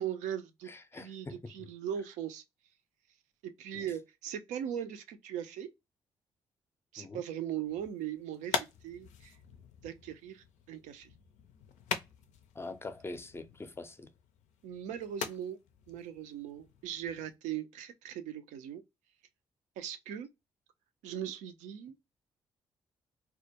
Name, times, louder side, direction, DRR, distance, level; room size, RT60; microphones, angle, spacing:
voice 1, 0.0-0.7 1.0-2.4 3.4-5.7 6.9-9.3 9.8-11.1 14.6-15.6 15.9-18.8 19.8-20.3 21.0-21.9, right 10 dB, 80° right, 0.4 m, -39 dB
voice 2, 0.7-1.7 3.7-3.9 7.0-7.3 12.5-14.1, left 2 dB, 20° left, 0.4 m, -44 dB
sound 1, 7.6-17.3, left 7 dB, 80° left, 0.4 m, -43 dB
2.2 x 2.1 x 2.7 m
hypercardioid pair, 50°, 12 cm